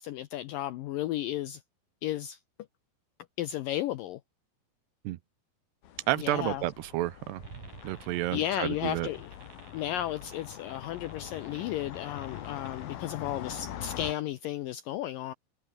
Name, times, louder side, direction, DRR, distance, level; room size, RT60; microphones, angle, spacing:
voice 1, 0.0-1.6 2.0-2.4 3.4-4.2 6.2-6.6 8.3-9.3 9.7-15.3, left 13 dB, 80° left, 2.0 m, -34 dB
sound 1, 5.8-14.1, left 11 dB, 65° left, 3.5 m, -43 dB
voice 2, 6.1-7.4 7.8-9.1, right 16 dB, 80° right, 3.0 m, -30 dB
sound 2, 7.4-12.9, right 5 dB, 50° right, 6.3 m, -52 dB
omnidirectional pair, 4.9 m